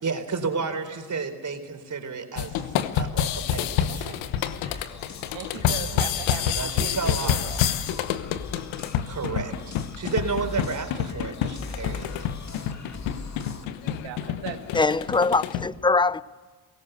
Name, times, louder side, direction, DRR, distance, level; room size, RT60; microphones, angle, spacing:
voice 1, 0.0-4.2 5.6-6.0 6.5-7.4 9.1-12.3 12.8-12.9, right 4 dB, 40° right, 6 dB, 4.2 m, -32 dB
sound 1, 2.4-15.7, left 10 dB, 85° left, 1.1 m, -28 dB
voice 2, 3.9-4.2 5.3-7.6 14.0-14.6, right 9 dB, 80° right, 5 dB, 2.0 m, -37 dB
sound 2, 4.4-13.7, left 4 dB, 40° left, 2.3 m, -41 dB
voice 3, 14.7-16.2, left 3 dB, 10° left, 19 dB, 0.6 m, -22 dB
21.5 x 18.0 x 8.1 m, 1.5 s
supercardioid pair, 60°, 44 cm